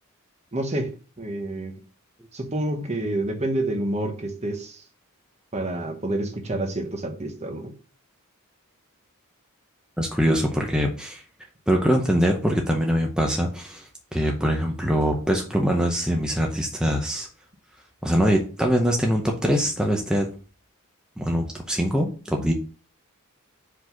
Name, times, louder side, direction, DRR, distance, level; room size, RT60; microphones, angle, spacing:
voice 1, 0.5-1.8 2.3-4.8 5.5-7.7, right 1 dB, 30° right, 1.1 m, -28 dB
voice 2, 10.0-11.2 11.7-17.3 18.0-20.3 21.2-22.5, equal, 5° right, 0.7 m, -23 dB
5.1 x 4.1 x 5.8 m
head